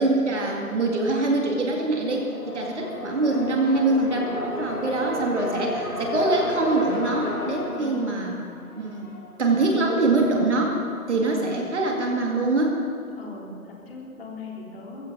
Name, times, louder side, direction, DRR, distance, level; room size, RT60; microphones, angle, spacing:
voice 1, 0.0-8.4 8.8-9.1 9.4-10.8 11.1-12.8, right 2 dB, 50° right, 0 dB, 2.4 m, -24 dB
sound 1, 1.6-9.4, left 1 dB, 85° left, 3.5 m, -33 dB
voice 2, 7.7-8.0 13.2-15.1, left 3 dB, 40° left, -2 dB, 3.5 m, -39 dB
21.0 x 15.5 x 4.1 m, 2.8 s
figure-of-eight pair, 145°, 45 cm